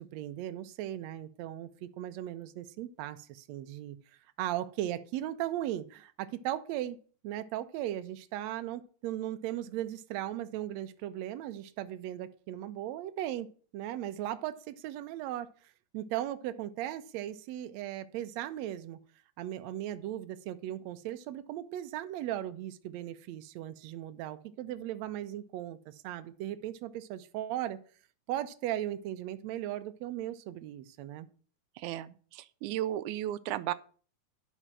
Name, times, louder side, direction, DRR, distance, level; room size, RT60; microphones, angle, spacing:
voice 1, 0.0-4.0 4.4-7.0 7.2-13.5 13.7-15.5 15.9-19.0 19.4-27.8 28.3-31.3, right 12 dB, 75° right, 1.9 m, -37 dB
voice 2, 31.8-33.7, right 13 dB, 90° right, 2.0 m, -35 dB
11.0 x 5.6 x 6.1 m
omnidirectional pair, 3.4 m